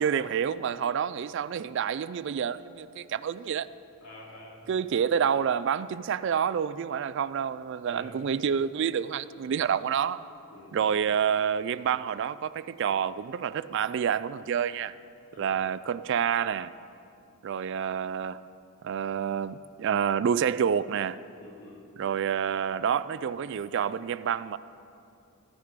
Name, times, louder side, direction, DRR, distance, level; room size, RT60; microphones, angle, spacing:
voice 1, 0.0-3.7 4.7-10.2 10.7-14.9 15.4-16.7 17.4-18.4 18.8-21.2 22.0-24.6, right 7 dB, 55° right, 0.3 m, -28 dB
voice 2, 4.0-4.6 7.8-8.2 10.5-10.8 15.3-15.6 21.4-21.8, left 2 dB, 75° left, 3.0 m, -48 dB
14.5 x 9.9 x 5.1 m
head